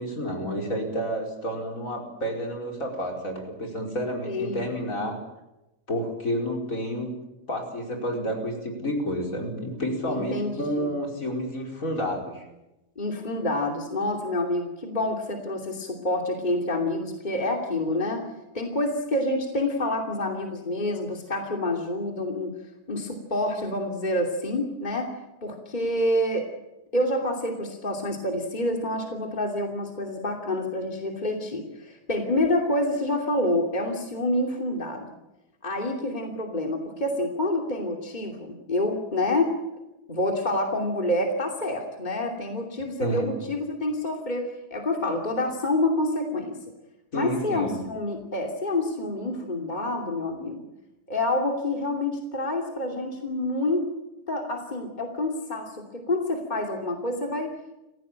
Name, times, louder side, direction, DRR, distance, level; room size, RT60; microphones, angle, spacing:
voice 1, 0.0-5.2 5.9-7.1 7.5-12.4 43.0-43.3 47.1-47.8, equal, 55° left, 1 dB, 5.3 m, -30 dB
voice 2, 4.3-4.7 10.1-10.9 13.0-18.2 18.5-22.5 22.9-25.1 25.4-26.5 26.9-35.1 35.6-39.5 40.1-46.6 47.1-50.6 51.1-53.9 54.3-57.5, left 1 dB, 30° left, 2 dB, 3.0 m, -27 dB
29.5 x 15.5 x 8.9 m, 0.96 s
omnidirectional pair, 1.7 m